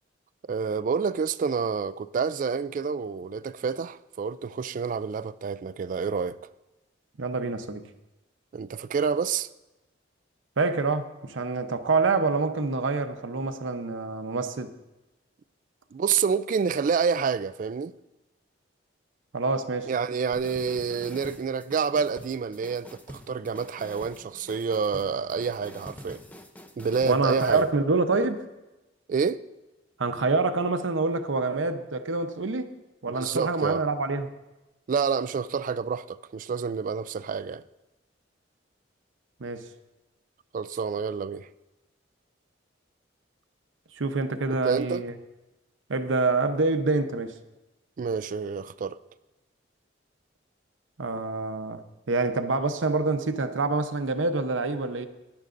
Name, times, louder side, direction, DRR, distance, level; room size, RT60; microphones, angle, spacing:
voice 1, 0.5-6.4 8.5-9.5 15.9-17.9 19.9-26.2 26.8-27.7 29.1-29.4 33.1-33.8 34.9-37.6 40.5-41.5 44.5-45.0 48.0-49.0, right 5 dB, 45° right, 0.3 m, -28 dB
voice 2, 7.2-7.8 10.6-14.7 19.3-19.9 27.0-28.5 30.0-32.7 33.0-34.3 39.4-39.6 44.0-45.1 45.9-47.3 51.0-51.8 52.1-55.1, right 3 dB, 85° right, 0.8 m, -26 dB
sound 1, 20.3-27.7, equal, 10° left, 0.6 m, -46 dB
17.5 x 10.5 x 2.5 m
head